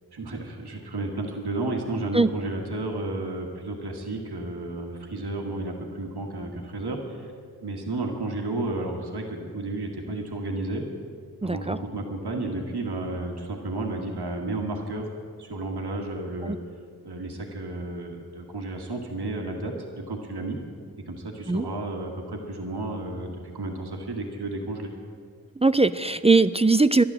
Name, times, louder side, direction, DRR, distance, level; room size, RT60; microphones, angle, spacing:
voice 1, 0.1-7.3 7.6-10.8 11.4-15.1 15.4-16.6 17.0-20.6 21.1-24.9, right 2 dB, 85° right, 1 dB, 1.6 m, -32 dB
voice 2, 11.4-11.8 16.4-16.6 21.5-21.7 25.6-27.0, right 3 dB, 15° right, 13 dB, 0.3 m, -20 dB
11.5 x 11.0 x 7.4 m, 2.2 s
wide cardioid pair, 50°, 38 cm